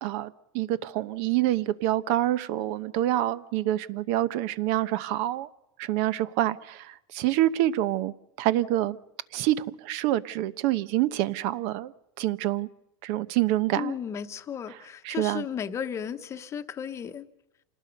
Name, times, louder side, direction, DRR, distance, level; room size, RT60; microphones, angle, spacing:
voice 1, 0.0-5.5 5.8-9.0 9.3-12.7 13.0-14.0 15.0-15.4, right 14 dB, 55° right, 1.0 m, -27 dB
voice 2, 13.8-17.2, left 8 dB, 20° left, 1.1 m, -34 dB
27.5 x 19.0 x 5.3 m
supercardioid pair, 155°, 13 cm